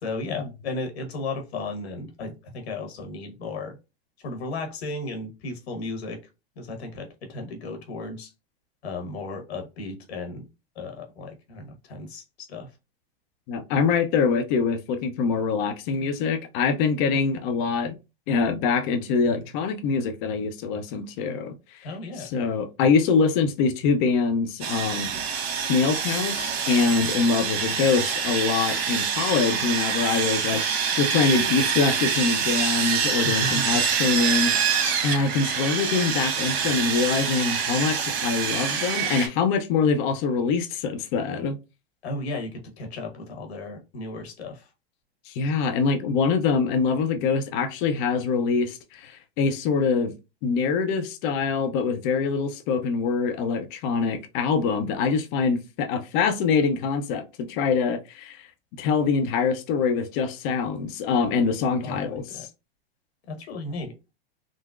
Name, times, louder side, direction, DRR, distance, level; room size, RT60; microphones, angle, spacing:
voice 1, 0.0-3.8 4.2-6.2 6.6-8.3 8.8-10.5 10.7-12.7 21.8-22.3 33.2-33.8 42.0-44.7 61.8-62.4 63.3-63.9, left 2 dB, 80° left, 1.3 m, -34 dB
voice 2, 13.5-18.0 18.3-21.8 22.2-25.1 25.7-41.6 45.3-50.1 50.4-58.5 58.8-62.2, left 5 dB, 50° left, 0.7 m, -24 dB
Sawing, 24.6-39.3, right 7 dB, 70° right, 1.2 m, -26 dB
3.8 x 2.1 x 2.4 m
hypercardioid pair, 120°, 31 cm